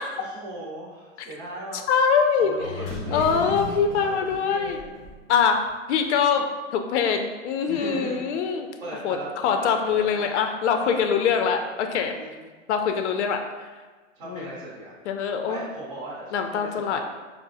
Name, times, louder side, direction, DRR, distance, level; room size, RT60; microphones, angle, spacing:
voice 1, 0.2-1.8 2.4-5.0 7.7-9.3 9.6-9.7 10.0-10.3 10.7-11.1 12.1-12.4 14.1-15.0 15.4-17.0, right 1 dB, 25° right, -9 dB, 0.7 m, -38 dB
voice 2, 1.9-2.5 3.1-4.8 5.3-5.6 5.9-8.7 9.0-9.2 9.4-12.1 12.7-13.4 14.3-14.5 15.1-15.6 16.3-17.0, left 6 dB, 65° left, 5 dB, 0.5 m, -23 dB
sound 1, 2.6-5.4 5.7-5.8, left 5 dB, 25° left, 0.7 m, -36 dB
sound 2, 2.9-6.4, right 6 dB, 65° right, 0.5 m, -42 dB
4.6 x 2.0 x 2.6 m, 1.3 s
hypercardioid pair, 150°, 38 cm